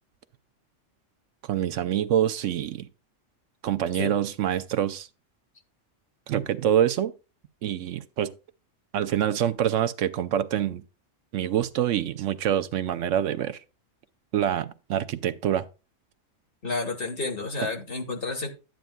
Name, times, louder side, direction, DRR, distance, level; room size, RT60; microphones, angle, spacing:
voice 1, 1.4-2.9 3.6-5.1 6.3-7.1 7.6-8.3 8.9-10.8 11.3-13.6 14.3-15.7 17.6-17.7, right 10 dB, 75° right, 1.0 m, -26 dB
voice 2, 16.6-18.5, left 3 dB, 45° left, 1.6 m, -30 dB
12.0 x 8.9 x 2.2 m
omnidirectional pair, 1.3 m